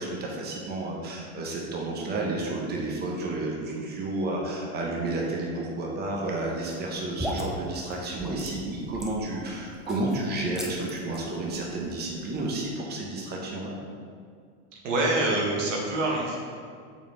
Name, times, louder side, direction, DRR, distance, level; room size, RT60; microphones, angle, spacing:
voice 1, 0.0-13.8, right 2 dB, 25° right, -2 dB, 1.0 m, -31 dB
sound 1, 6.7-12.7, equal, ahead, 0.5 m, -39 dB
voice 2, 14.7-16.4, right 2 dB, 85° right, -2 dB, 1.5 m, -26 dB
6.5 x 4.4 x 3.3 m, 2.1 s
supercardioid pair, 115°, 37 cm